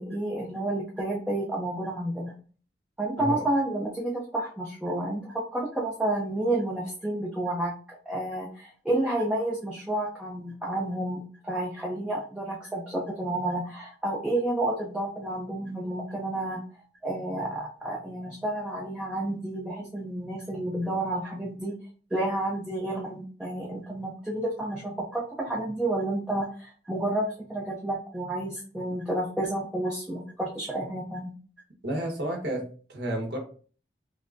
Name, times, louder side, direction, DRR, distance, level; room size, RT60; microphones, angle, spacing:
voice 1, 0.0-2.4 3.0-16.6 17.0-21.7 22.1-31.3, right 1 dB, 5° right, -4 dB, 0.5 m, -30 dB
voice 2, 31.8-33.4, right 1 dB, 75° right, 1 dB, 1.2 m, -31 dB
5.4 x 2.1 x 2.5 m, 0.41 s
head